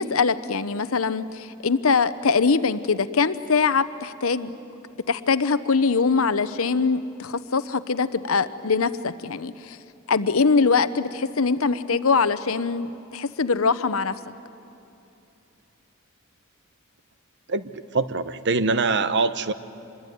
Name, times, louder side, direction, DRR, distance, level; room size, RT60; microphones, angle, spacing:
voice 1, 0.0-4.5 5.1-9.8 10.1-14.2, left 4 dB, 75° left, 14 dB, 0.9 m, -23 dB
voice 2, 17.5-19.5, right 4 dB, 55° right, 13 dB, 0.9 m, -24 dB
26.0 x 22.0 x 9.4 m, 2.8 s
head